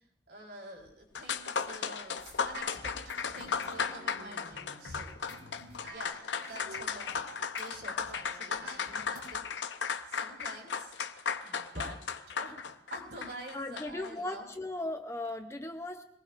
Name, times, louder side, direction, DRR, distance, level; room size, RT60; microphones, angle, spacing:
voice 1, 0.3-5.1 5.8-9.5 10.1-11.0 11.4-12.0 12.3-14.5, right 1 dB, 60° right, 0 dB, 4.3 m, -47 dB
sound 1, 0.9-1.0 1.2-14.1, left 6 dB, 75° left, 0.8 m, -36 dB
sound 2, 2.2-7.7 8.0-9.2, right 2 dB, 90° right, 6.7 m, -49 dB
voice 2, 13.5-16.0, left 2 dB, 15° left, 6 dB, 0.7 m, -37 dB
25.5 x 19.0 x 2.6 m, 0.73 s
head